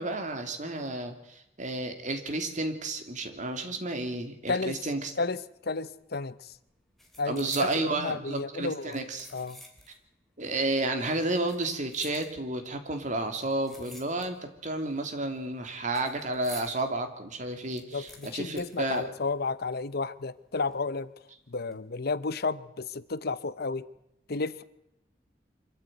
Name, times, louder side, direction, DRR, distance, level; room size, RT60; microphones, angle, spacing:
voice 1, 0.0-5.1 7.3-9.3 10.4-19.1, right 2 dB, 45° right, 6 dB, 3.0 m, -31 dB
voice 2, 5.2-6.5 7.2-9.0 9.3-9.6 17.9-21.1 21.5-23.9 24.3-24.6, left 4 dB, 60° left, 16 dB, 0.8 m, -32 dB
sound 1, 5.9-6.2 6.5-7.9 8.7-10.1 10.4-10.5 11.3-12.7 13.4-14.6 14.9-16.8 17.2-17.3 17.5-19.6 19.9-20.0 20.7-21.1 21.5-21.7, left 1 dB, ahead, 4.1 m, -50 dB
25.0 x 14.0 x 9.2 m, 0.83 s
head